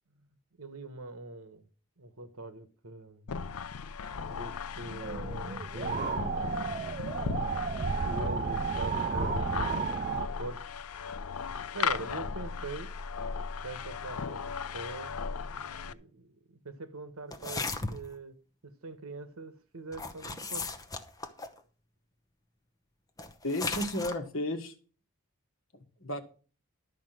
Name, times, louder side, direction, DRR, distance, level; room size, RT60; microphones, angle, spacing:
voice 1, 0.6-1.6 2.0-3.4 4.3-6.4 7.7-9.9 10.4-10.6 11.7-12.9 13.6-18.3 18.6-20.7, right 2 dB, 75° right, 1.3 m, -43 dB
sound 1, 3.3-15.9, left 6 dB, 85° left, 0.6 m, -37 dB
sound 2, 5.0-10.3, right 5 dB, 35° right, 0.4 m, -32 dB
sound 3, 17.3-18.1 19.9-21.6 23.2-24.2, left 3 dB, 15° left, 0.8 m, -36 dB
voice 2, 23.4-24.7 26.0-26.2, left 1 dB, 65° left, 1.8 m, -32 dB
12.0 x 5.0 x 7.6 m
head